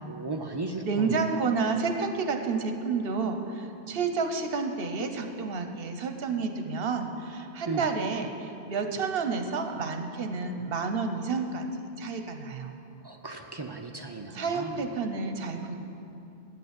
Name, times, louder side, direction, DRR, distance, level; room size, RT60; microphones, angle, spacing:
voice 1, 0.1-1.3 7.7-7.8 13.0-14.8, right 3 dB, 35° right, 4 dB, 0.5 m, -36 dB
voice 2, 0.8-11.7 12.0-12.8 14.3-15.8, right 4 dB, 65° right, 6 dB, 1.0 m, -30 dB
8.7 x 6.8 x 8.6 m, 2.7 s
omnidirectional pair, 1.1 m